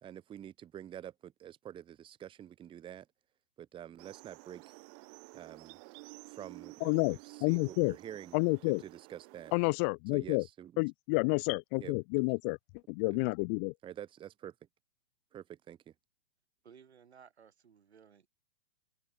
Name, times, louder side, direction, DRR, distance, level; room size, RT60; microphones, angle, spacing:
voice 1, 0.0-3.1 3.6-4.8 5.3-5.8 6.3-8.4 8.8-9.5 10.1-10.7 11.8-12.2 13.1-13.3 13.8-14.5 15.3-15.9, right 10 dB, 15° right, 1.7 m, -48 dB
sound 1, 4.0-9.5, right 40 dB or more, 35° right, 2.7 m, -52 dB
voice 2, 6.8-7.9 8.3-8.8 9.5-10.5 10.8-12.6 12.9-13.7, left 37 dB, 15° left, 0.3 m, -30 dB
voice 3, 16.6-18.3, right 7 dB, 85° right, 6.0 m, -58 dB
open air
hypercardioid pair, 145°, 32 cm